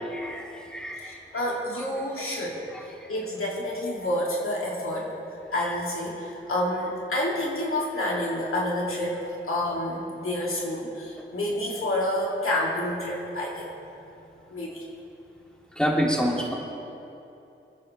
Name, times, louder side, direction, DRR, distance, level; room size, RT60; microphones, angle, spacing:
voice 1, 0.0-1.1 15.8-16.6, equal, 5° left, -3 dB, 2.6 m, -27 dB
voice 2, 1.0-2.6 3.1-5.1 5.5-13.7 14.5-14.8, left 1 dB, 90° left, -4 dB, 2.5 m, -29 dB
25.0 x 9.6 x 3.3 m, 2.8 s
wide cardioid pair, 55°, 21 cm